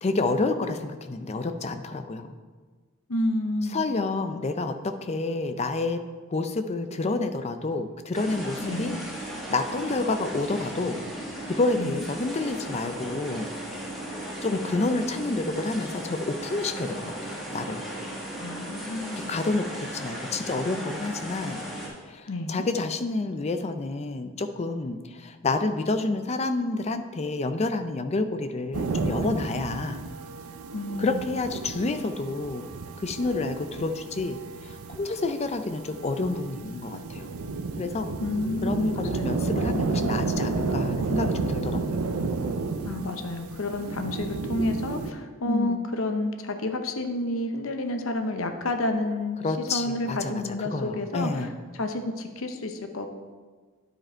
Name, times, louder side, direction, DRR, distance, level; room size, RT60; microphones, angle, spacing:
voice 1, 0.0-2.3 3.7-6.0 6.3-8.9 9.5-11.0 11.5-13.5 14.4-17.8 19.3-21.6 22.1-30.0 31.0-32.7 33.0-37.3 37.8-38.1 38.6-42.0 45.5-45.8 49.4-51.5, left 3 dB, 30° left, 8 dB, 0.4 m, -29 dB
voice 2, 3.1-3.8 8.6-9.0 11.7-12.0 18.4-19.4 22.3-22.7 30.7-31.2 38.2-39.3 42.8-49.4 49.7-51.5 51.7-53.1, left 2 dB, 65° left, 6 dB, 0.7 m, -30 dB
sound 1, 8.1-21.9, right 1 dB, ahead, 1.5 m, -36 dB
sound 2, 28.7-45.1, right 3 dB, 85° right, 0.5 m, -31 dB
9.9 x 5.1 x 4.4 m, 1.5 s
head